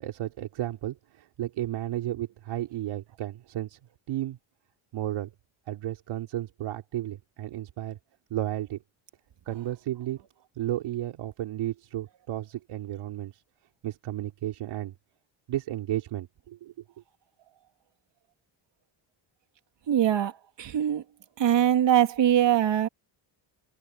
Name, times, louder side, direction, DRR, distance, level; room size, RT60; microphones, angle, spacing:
voice 1, 0.0-3.8 4.1-4.4 4.9-5.3 5.7-8.0 8.3-8.8 9.4-10.2 10.5-13.4 13.8-14.9 15.5-16.7, right 13 dB, 80° right, 3.4 m, -33 dB
voice 2, 19.9-20.3 20.6-21.0 21.4-22.9, right 10 dB, 60° right, 2.8 m, -22 dB
cardioid pair, 115°, 49 cm